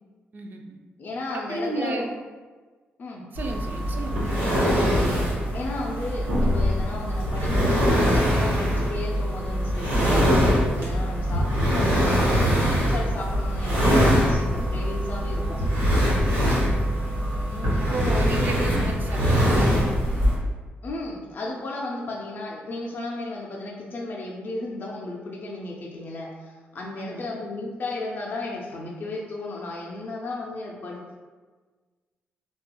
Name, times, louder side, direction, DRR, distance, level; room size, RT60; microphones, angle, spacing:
voice 1, 0.3-0.8 1.3-2.1 3.3-4.3 16.5-16.9 17.8-19.9 27.0-27.2, right 3 dB, 50° right, 3 dB, 0.4 m, -33 dB
voice 2, 1.0-2.1 3.0-3.3 5.5-6.3 6.5-15.6 17.5-18.5 20.8-31.0, left 2 dB, 50° left, -2 dB, 0.4 m, -34 dB
sound 1, 3.3-20.3, equal, 85° right, 1.1 m, -22 dB
2.8 x 2.3 x 2.2 m, 1.4 s
cardioid pair, 80°, 4 cm